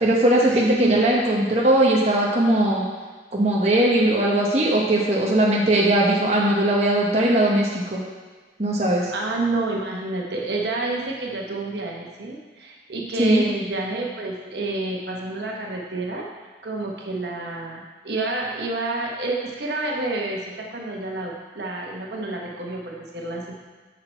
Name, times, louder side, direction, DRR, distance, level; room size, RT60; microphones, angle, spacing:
voice 1, 0.0-2.8 3.3-8.0 8.6-9.1 13.2-13.4, right 1 dB, 35° right, -3 dB, 0.9 m, -19 dB
voice 2, 0.5-1.0 9.1-16.3 16.6-23.6, right 2 dB, 70° right, -1 dB, 1.1 m, -29 dB
6.6 x 5.9 x 4.4 m, 1.4 s
head